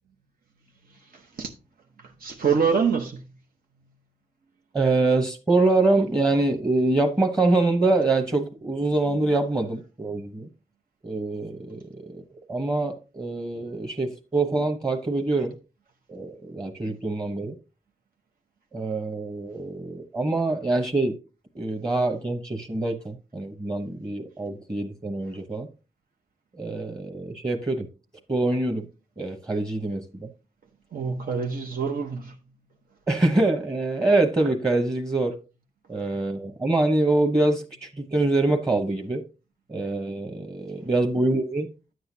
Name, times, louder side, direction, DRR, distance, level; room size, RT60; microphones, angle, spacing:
voice 1, 0.8-1.5 2.0-3.3 30.9-32.4 40.8-40.9, right 6 dB, 90° right, 0.9 m, -26 dB
voice 2, 4.7-10.5 11.0-11.8 12.1-12.2 12.5-15.6 16.1-17.5 18.7-21.2 21.5-25.7 26.6-27.9 28.3-28.9 29.2-30.3 33.1-35.3 35.9-39.2 39.7-41.7, right 2 dB, 25° right, 1.0 m, -25 dB
10.0 x 7.9 x 2.7 m
wide cardioid pair, 110°, 15 cm